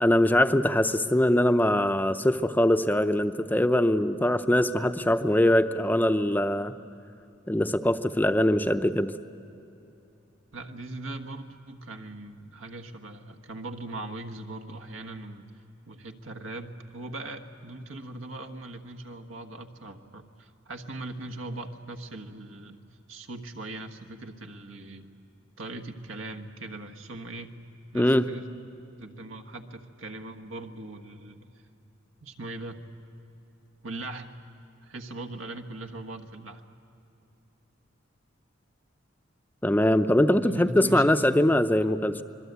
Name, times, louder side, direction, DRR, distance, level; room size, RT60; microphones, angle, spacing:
voice 1, 0.0-6.7 7.5-9.1 27.9-28.3 39.6-42.2, left 1 dB, 10° left, 9 dB, 0.6 m, -22 dB
voice 2, 10.5-15.5 15.9-22.8 23.1-25.1 25.6-27.6 27.9-28.5 29.0-31.5 32.2-32.9 33.8-34.4 34.8-36.6 40.4-41.5, right 2 dB, 80° right, 7 dB, 1.5 m, -40 dB
25.5 x 22.0 x 8.2 m, 2.9 s
head